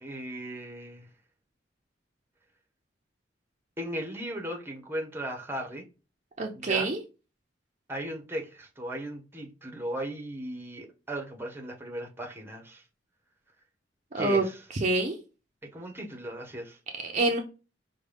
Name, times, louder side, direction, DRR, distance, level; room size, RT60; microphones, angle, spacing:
voice 1, 0.0-1.1 3.8-5.8 6.5-6.9 7.9-12.8 14.2-14.6 15.7-16.8, right 1 dB, 15° right, 0.8 m, -37 dB
voice 2, 6.4-7.0 14.1-14.4 14.7-15.2 17.0-17.4, right 3 dB, 40° right, 0.5 m, -26 dB
5.1 x 2.2 x 3.3 m
head